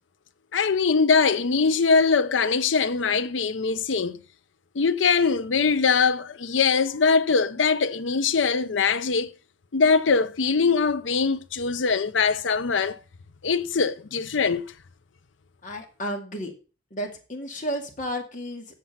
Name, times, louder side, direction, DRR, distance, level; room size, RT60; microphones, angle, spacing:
voice 1, 0.5-4.2 4.7-9.3 9.7-13.0 13.4-14.6, left 5 dB, 85° left, 0.7 m, -22 dB
voice 2, 15.6-16.5 16.9-18.7, equal, 45° left, 2.2 m, -32 dB
7.5 x 7.4 x 5.7 m
head